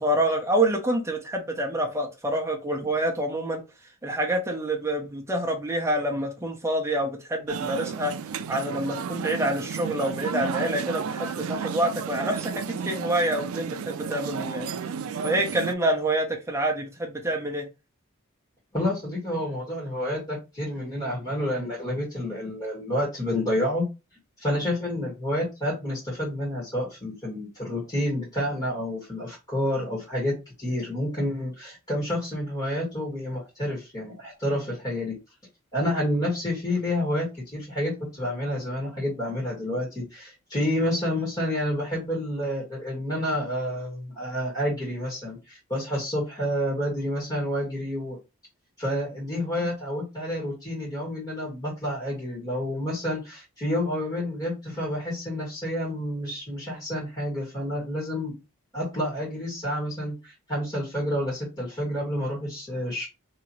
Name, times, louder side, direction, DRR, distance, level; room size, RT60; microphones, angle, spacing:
voice 1, 0.0-3.6 4.0-8.1 8.5-14.7 15.2-17.7, right 1 dB, 10° right, 0.8 m, -27 dB
sound 1, 7.5-15.7, right 6 dB, 75° right, 0.4 m, -32 dB
voice 2, 18.7-23.8 24.4-35.1 35.7-48.2 48.8-58.3 58.7-63.1, left 1 dB, 20° left, 1.7 m, -29 dB
3.0 x 2.8 x 4.0 m
head